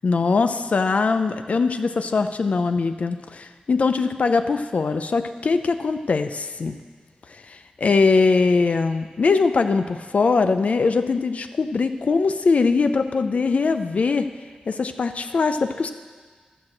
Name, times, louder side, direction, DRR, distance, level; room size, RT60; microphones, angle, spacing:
voice 1, 0.0-6.7 7.3-14.3 14.7-15.9, left 4 dB, 55° left, 9 dB, 0.4 m, -21 dB
11.5 x 6.0 x 7.5 m, 1.5 s
wide cardioid pair, 125°, 3 cm